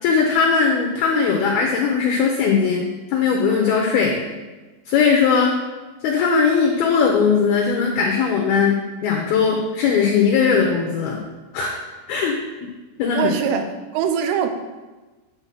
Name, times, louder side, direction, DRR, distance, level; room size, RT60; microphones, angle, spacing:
voice 1, 0.0-4.2 4.9-5.6 6.0-11.2 11.5-11.7 12.1-12.4 13.0-13.3, left 5 dB, 80° left, 0 dB, 2.2 m, -19 dB
voice 2, 13.1-14.5, right 8 dB, 85° right, 7 dB, 3.3 m, -22 dB
9.9 x 4.2 x 7.5 m, 1.2 s
omnidirectional pair, 5.7 m